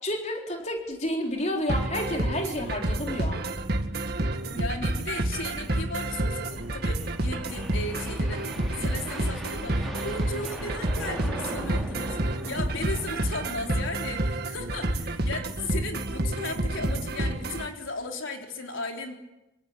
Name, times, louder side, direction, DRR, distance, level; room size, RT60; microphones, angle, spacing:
voice 1, 0.0-3.4, left 1 dB, 35° left, 1 dB, 4.1 m, -30 dB
sound 1, 0.9-1.1 1.4-1.5 1.8-1.9 2.4-2.7 4.0-13.3, right 1 dB, ahead, 6.0 m, -42 dB
sound 2, 1.7-17.7, right 1 dB, 50° right, 1.9 m, -29 dB
voice 2, 4.5-8.5 8.8-19.2, left 3 dB, 75° left, 3 dB, 3.7 m, -36 dB
26.5 x 25.0 x 8.9 m, 0.96 s
head